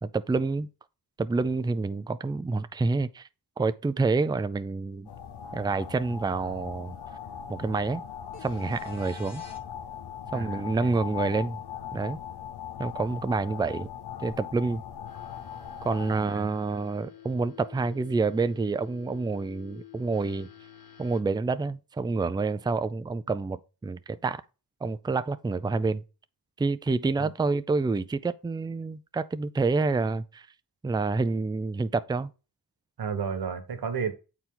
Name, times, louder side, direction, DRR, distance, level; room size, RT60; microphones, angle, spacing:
voice 1, 0.0-0.7 1.2-3.3 3.6-5.1 5.5-7.0 7.5-8.0 8.4-9.4 10.3-11.6 11.9-12.2 12.8-13.9 14.2-14.8 15.8-20.5 21.0-24.4 24.8-26.0 26.6-30.5 30.8-32.3, right 3 dB, 10° right, 0.4 m, -28 dB
sound 1, 5.1-16.3, left 9 dB, 85° left, 0.8 m, -39 dB
sound 2, 8.3-9.6 13.4-13.5, left 2 dB, 40° left, 2.4 m, -48 dB
voice 2, 10.3-11.0 16.1-16.5 27.2-27.3 33.0-34.1, right 6 dB, 70° right, 1.5 m, -33 dB
sound 3, 15.0-21.2, left 10 dB, 55° left, 2.3 m, -50 dB
8.1 x 4.6 x 3.8 m
cardioid pair, 85°, 39 cm